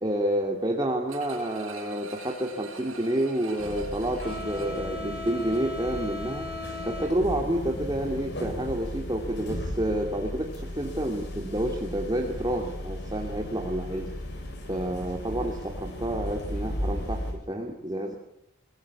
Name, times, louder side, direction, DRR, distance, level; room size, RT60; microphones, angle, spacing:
voice 1, 0.0-6.5 6.8-14.1 14.7-18.1, right 1 dB, 20° right, 1 dB, 2.5 m, -29 dB
sound 1, 1.1-5.9 6.3-6.4, right 3 dB, 80° right, 6.6 m, -44 dB
sound 2, 3.6-17.3, left 1 dB, 55° left, 7.9 m, -35 dB
23.0 x 21.5 x 8.4 m, 0.72 s
head